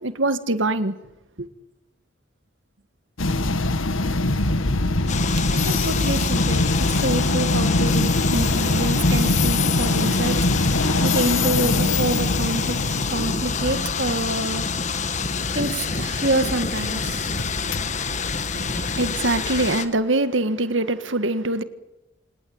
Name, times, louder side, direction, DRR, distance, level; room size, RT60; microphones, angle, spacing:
voice 1, 0.0-0.9 1.4-1.5 18.5-21.6, right 2 dB, 75° right, 1.7 m, -23 dB
sound 1, 3.2-19.7, left 2 dB, 85° left, 1.7 m, -24 dB
sound 2, 5.1-19.9, left 6 dB, 35° left, 1.6 m, -28 dB
voice 2, 5.5-10.5 11.0-12.8 13.1-14.6 15.5-17.3, right 2 dB, 55° right, 3.0 m, -27 dB
27.0 x 19.5 x 8.8 m
head